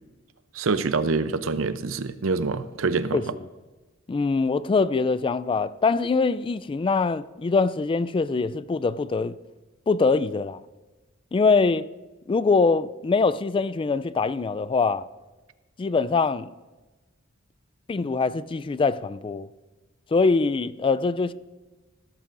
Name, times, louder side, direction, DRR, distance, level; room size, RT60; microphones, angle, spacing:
voice 1, 0.5-3.2, right 4 dB, 85° right, 0.6 m, -25 dB
voice 2, 3.1-3.4 4.1-9.4 9.9-10.6 11.3-11.9 12.3-15.1 15.8-16.5 17.9-19.5 20.1-21.3, left 4 dB, 25° left, 0.3 m, -23 dB
16.0 x 13.5 x 2.6 m
head